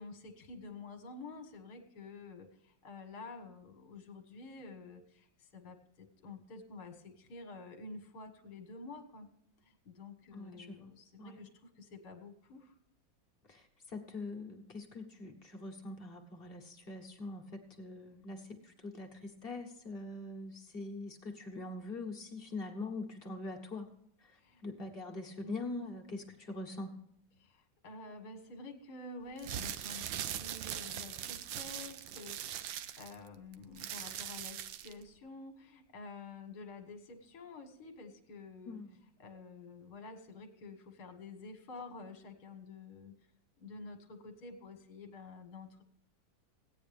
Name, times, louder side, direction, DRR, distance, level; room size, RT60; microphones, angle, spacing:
voice 1, 0.0-9.3 9.6-12.8 24.3-24.6 25.4-25.6 27.4-38.8 39.2-43.2 43.6-45.8, left 3 dB, 60° left, 6 dB, 1.9 m, -49 dB
voice 2, 10.3-10.9 11.2-11.4 13.5-23.9 24.2-27.0 38.7-39.0, left 2 dB, 35° left, 2 dB, 1.4 m, -43 dB
sound 1, 29.3-35.0, right 10 dB, 90° right, 1.4 m, -41 dB
16.0 x 9.4 x 3.4 m, 0.73 s
omnidirectional pair, 2.0 m